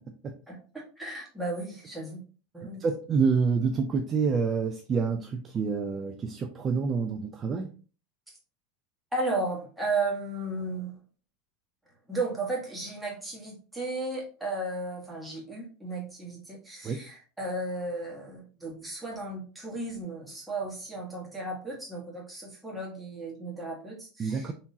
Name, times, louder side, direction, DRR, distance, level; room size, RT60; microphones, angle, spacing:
voice 1, 0.5-2.2 2.5-2.8 9.1-11.0 12.1-24.5, right 2 dB, 5° right, -3 dB, 1.4 m, -34 dB
voice 2, 2.8-7.7 16.8-17.0 24.2-24.5, right 5 dB, 30° right, 5 dB, 0.4 m, -27 dB
3.7 x 2.8 x 2.7 m, 0.38 s
supercardioid pair, 125°, 0 cm